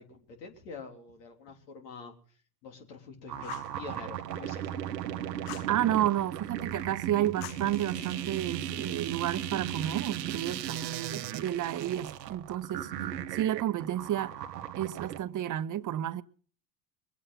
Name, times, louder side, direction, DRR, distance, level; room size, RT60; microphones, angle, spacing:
voice 1, 0.0-2.1 2.6-5.2, left 5 dB, 80° left, 3.5 m, -46 dB
sound 1, 3.3-15.2, right 10 dB, 90° right, 1.0 m, -37 dB
Fire, 3.4-3.8 5.5-5.8 7.4-8.3, left 15 dB, 60° left, 0.8 m, -44 dB
voice 2, 5.7-12.9 13.3-14.4 14.8-16.2, right 12 dB, 40° right, 1.0 m, -31 dB
22.5 x 8.4 x 5.7 m
hypercardioid pair, 75°, 48 cm